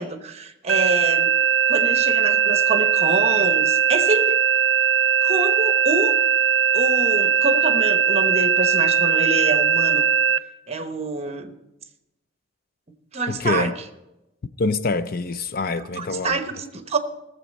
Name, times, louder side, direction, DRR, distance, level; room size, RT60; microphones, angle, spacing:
voice 1, 0.0-1.4 1.7-4.4 5.2-6.2 6.7-10.1 10.7-11.5 13.1-13.7 15.8-17.0, right 3 dB, 35° right, 1.0 m, -26 dB
sound 1, 0.7-10.4, right 8 dB, 75° right, 0.6 m, -19 dB
voice 2, 13.3-13.7 14.6-16.4, left 3 dB, 50° left, 0.5 m, -25 dB
17.5 x 7.4 x 5.3 m
head